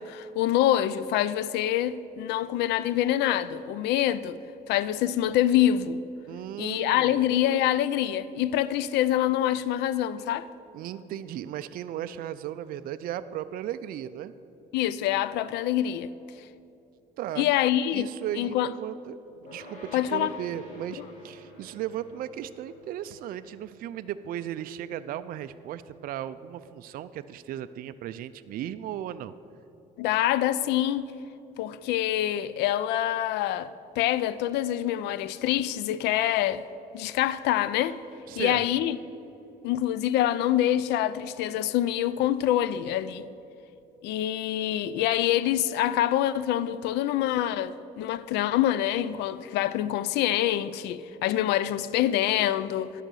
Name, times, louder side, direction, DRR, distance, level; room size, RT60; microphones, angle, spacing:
voice 1, 0.0-4.4 4.7-6.0 6.6-10.5 14.7-16.1 17.4-18.1 18.4-18.7 19.9-20.3 30.0-31.1 31.6-36.6 36.9-38.0 38.4-39.0 39.6-43.3 44.0-53.0, left 12 dB, 85° left, 0.4 m, -26 dB
voice 2, 6.3-7.2 10.7-14.3 17.2-17.5 17.9-19.2 19.5-29.3 38.3-38.6, right 11 dB, 60° right, 0.4 m, -36 dB
sound 1, 19.4-30.8, equal, 45° left, 2.5 m, -51 dB
11.0 x 6.6 x 6.2 m
cardioid pair, 110°, 17 cm